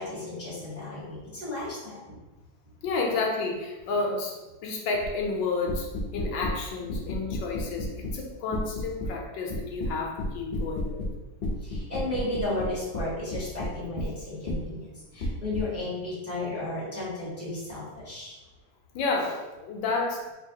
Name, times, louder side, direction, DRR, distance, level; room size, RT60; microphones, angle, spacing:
voice 1, 0.0-2.2 11.6-14.8 15.1-18.4, left 2 dB, 10° right, -8 dB, 0.9 m, -33 dB
voice 2, 2.8-5.9 6.1-11.0 18.9-20.3, left 3 dB, 80° left, 0 dB, 1.4 m, -30 dB
sound 1, 5.0-5.2 5.7-6.6 6.9-8.2 8.5-9.1 9.5-11.1 11.4-14.1 14.5-14.6 15.2-15.6, left 1 dB, 50° left, 0.8 m, -31 dB
4.5 x 2.8 x 2.8 m, 1.1 s
omnidirectional pair, 2.1 m